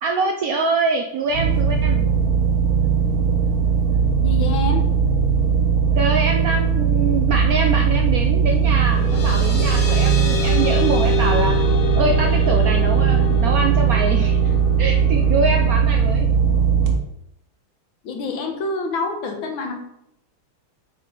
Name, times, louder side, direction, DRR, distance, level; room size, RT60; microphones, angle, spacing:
voice 1, 0.0-2.1 6.0-11.6 12.0-16.3, right 3 dB, 75° right, 3 dB, 0.8 m, -24 dB
sound 1, 1.3-16.9, right 6 dB, 55° right, 1.4 m, -18 dB
voice 2, 4.2-4.8 18.0-19.7, left 3 dB, 90° left, 3 dB, 1.9 m, -26 dB
sound 2, 8.6-15.7, left 8 dB, 70° left, 1.8 m, -29 dB
8.1 x 4.3 x 3.8 m, 0.79 s
omnidirectional pair, 2.1 m